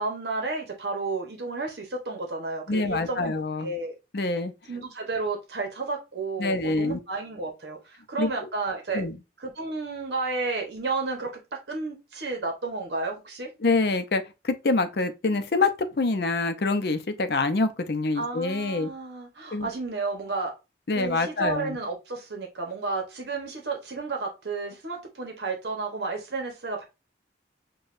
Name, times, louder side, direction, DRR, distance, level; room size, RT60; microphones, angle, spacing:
voice 1, 0.0-3.3 3.6-3.9 4.7-9.0 9.4-13.5 18.2-20.5 20.9-26.8, right 3 dB, 70° right, 0.9 m, -32 dB
voice 2, 2.7-3.7 4.1-4.5 6.4-7.0 8.2-8.3 8.9-9.2 13.6-15.7 16.0-18.9 19.5-19.7 20.9-21.8, left 3 dB, 60° left, 0.5 m, -25 dB
6.3 x 2.3 x 2.5 m
head